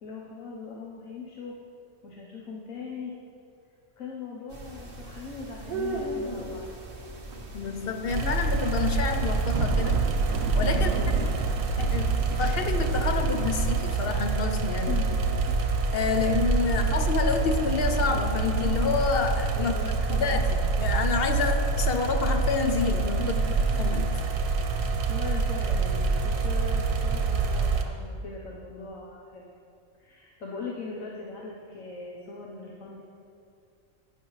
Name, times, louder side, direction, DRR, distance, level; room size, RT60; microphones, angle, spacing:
voice 1, 0.0-1.6 2.0-3.1 4.0-6.7 8.2-8.4 10.7-11.2 14.9-15.2 15.5-15.6 16.1-17.0 19.6-20.5 23.2-24.0 24.7-29.5 30.0-33.0, left 4 dB, 90° left, -3 dB, 1.3 m, -40 dB
sound 1, 4.5-14.3, right 1 dB, 45° right, 1.4 m, -39 dB
sound 2, 7.0-14.7 15.0-16.5 16.8-19.4 19.7-24.5 24.8-25.0, right 6 dB, 65° right, 0.8 m, -39 dB
voice 2, 7.5-10.1 10.5-10.9 11.8-15.0 15.9-19.7 20.1-23.3 23.8-24.1, left 5 dB, 55° left, 6 dB, 0.8 m, -28 dB
sound 3, 8.1-27.8, right 4 dB, 85° right, 1.3 m, -26 dB
11.5 x 9.8 x 3.2 m, 2.5 s
omnidirectional pair, 1.3 m